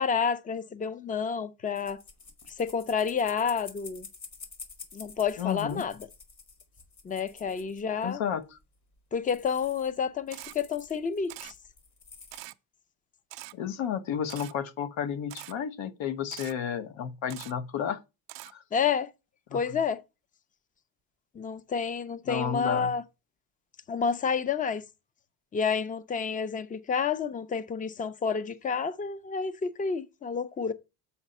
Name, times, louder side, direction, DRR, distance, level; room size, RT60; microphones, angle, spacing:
voice 1, 0.0-2.0 2.6-4.1 4.9-6.0 7.0-8.2 9.1-11.5 18.7-19.1 19.5-20.0 21.4-23.0 23.9-24.8 25.5-30.7, left 6 dB, 20° left, 0.5 m, -29 dB
sound 1, 1.7-8.2 8.6-8.7 9.0-9.1 9.3-10.0 10.3-12.4, left 4 dB, 35° left, 1.5 m, -49 dB
voice 2, 5.4-5.8 8.0-8.6 13.5-18.0 18.5-18.6 19.5-19.7 22.3-22.9, left 8 dB, 70° left, 1.0 m, -32 dB
Camera, 10.3-10.5 11.3-11.5 12.3-12.5 13.3-13.5 14.3-14.5 15.3-15.5 16.3-16.5 17.3-17.5 18.3-18.5, right 17 dB, 60° right, 0.6 m, -43 dB
7.2 x 4.1 x 5.3 m
cardioid pair, 125°, 48 cm